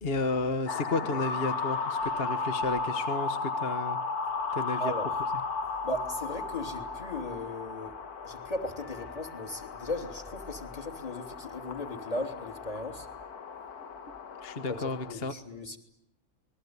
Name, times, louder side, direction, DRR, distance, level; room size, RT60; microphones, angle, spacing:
voice 1, 0.0-4.0 4.5-4.9 14.4-15.3, left 3 dB, 40° left, 10 dB, 1.4 m, -32 dB
sound 1, 0.7-15.1, left 4 dB, 85° left, 1.9 m, -35 dB
voice 2, 4.8-5.2 5.8-8.0 8.2-13.1 14.7-15.8, left 2 dB, 25° left, 5 dB, 3.2 m, -37 dB
27.5 x 21.5 x 9.6 m, 0.74 s
omnidirectional pair, 1.6 m